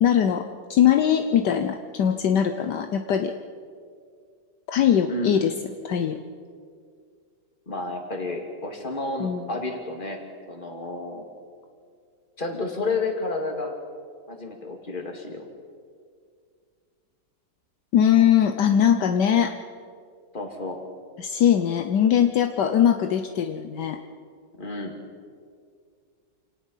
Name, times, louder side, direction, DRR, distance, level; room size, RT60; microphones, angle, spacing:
voice 1, 0.0-3.3 4.7-5.5 5.8-6.2 9.2-9.5 17.9-19.6 21.2-24.0, left 9 dB, 70° left, 6 dB, 1.4 m, -21 dB
voice 2, 5.1-5.5 7.7-10.2 10.5-11.2 12.4-13.8 14.3-15.5 20.3-20.8 24.6-25.0, left 2 dB, 25° left, 2 dB, 2.6 m, -31 dB
28.0 x 18.5 x 5.6 m, 2.1 s
omnidirectional pair, 1.9 m